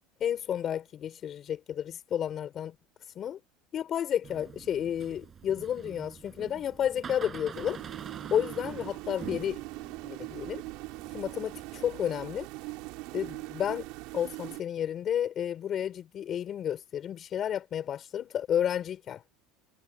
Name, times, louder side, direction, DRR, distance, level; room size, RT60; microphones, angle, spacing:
voice 1, 0.2-2.8 3.0-3.4 3.7-7.8 8.3-9.6 10.0-10.6 11.1-12.5 13.1-13.9 14.1-19.2, left 9 dB, 35° left, 4.6 m, -31 dB
Door, 4.2-11.9, right 7 dB, 25° right, 6.5 m, -46 dB
sound 1, 7.5-14.6, right 23 dB, 65° right, 4.7 m, -41 dB
supercardioid pair, 130°, 0 cm